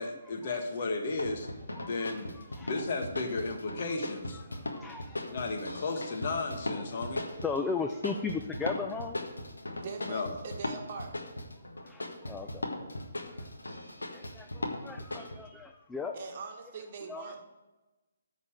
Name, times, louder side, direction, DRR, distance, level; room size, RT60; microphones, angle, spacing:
voice 1, 0.0-1.5 1.8-4.4 5.3-7.2 10.1-10.3, left 3 dB, 45° left, 4 dB, 1.4 m, -34 dB
sound 1, 1.1-15.3, left 1 dB, 80° left, 1.5 m, -38 dB
voice 2, 1.8-2.7 4.5-5.4 7.4-9.2 11.8-12.7 13.3-13.5 14.1-16.1 17.1-17.4, left 4 dB, 10° left, 4 dB, 0.4 m, -37 dB
voice 3, 9.7-11.1 16.1-17.4, right 5 dB, 40° right, 2 dB, 1.5 m, -42 dB
9.7 x 4.2 x 7.5 m, 1.1 s
figure-of-eight pair, 140°, 0 cm